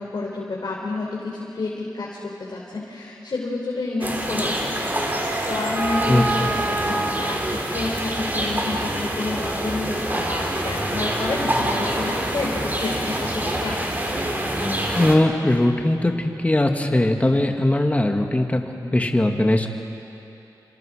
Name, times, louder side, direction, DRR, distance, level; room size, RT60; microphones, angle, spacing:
voice 1, 0.0-5.2 5.5-13.9, left 3 dB, 65° left, -4 dB, 3.8 m, -29 dB
sound 1, 4.0-15.2, right 1 dB, 25° right, 3.4 m, -25 dB
voice 2, 6.1-6.5 14.9-19.7, left 1 dB, 20° left, 3 dB, 2.0 m, -20 dB
29.5 x 26.0 x 5.1 m, 2.8 s
wide cardioid pair, 80°, 7 cm